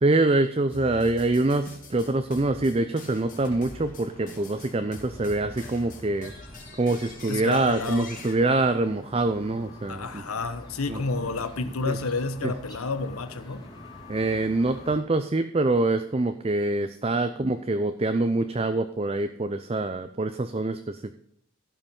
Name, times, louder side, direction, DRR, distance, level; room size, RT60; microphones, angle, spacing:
voice 1, 0.0-6.3 6.8-10.2 10.9-11.0 11.9-12.0 12.4-12.5 14.1-21.0, right 2 dB, 25° right, 9 dB, 0.5 m, -25 dB
sound 1, 0.7-8.3, left 2 dB, 35° left, 2.9 m, -44 dB
sound 2, 3.1-15.0, left 1 dB, 20° left, 2.3 m, -46 dB
voice 2, 7.3-8.1 9.9-13.6, left 3 dB, 85° left, 10 dB, 1.1 m, -30 dB
16.0 x 5.8 x 5.3 m, 0.72 s
head